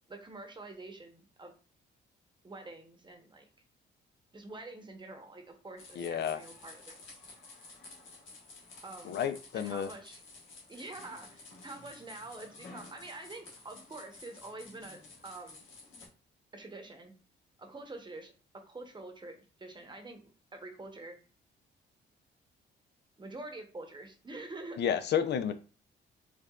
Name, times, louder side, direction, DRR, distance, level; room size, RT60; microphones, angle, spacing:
voice 1, 0.1-1.5 2.4-3.4 4.3-7.0 8.8-9.2 9.5-10.2 10.7-15.7 16.5-17.1 17.6-18.3 18.7-21.2 23.2-24.8, right 2 dB, 25° right, 0.9 m, -46 dB
sound 1, 5.8-16.1, left 3 dB, 75° left, 1.2 m, -52 dB
voice 2, 6.0-6.4 9.1-9.9 24.8-25.5, left 8 dB, 60° left, 0.4 m, -31 dB
4.6 x 2.3 x 2.4 m
cardioid pair, 90°, 20 cm